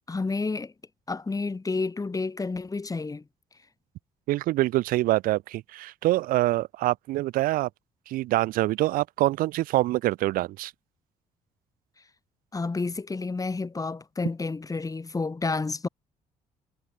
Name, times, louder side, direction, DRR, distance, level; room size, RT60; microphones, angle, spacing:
voice 1, 0.1-0.7 1.1-3.2 12.5-15.9, left 3 dB, 25° left, 5.5 m, -30 dB
voice 2, 4.3-7.7 8.1-10.7, right 17 dB, 80° right, 2.6 m, -25 dB
cardioid pair, 80°, 14 cm